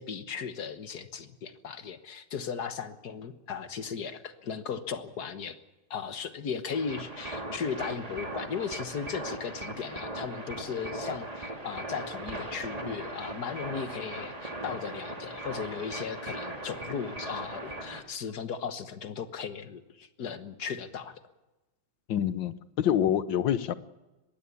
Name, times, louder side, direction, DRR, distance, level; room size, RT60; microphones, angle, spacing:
voice 1, 0.0-5.6 5.9-21.2, left 6 dB, 55° left, 11 dB, 1.7 m, -36 dB
sound 1, 6.7-18.0, right 1 dB, 20° right, 2.4 m, -39 dB
voice 2, 22.1-23.7, left 10 dB, 70° left, 14 dB, 1.6 m, -26 dB
21.0 x 16.5 x 8.4 m, 1.0 s
omnidirectional pair, 2.2 m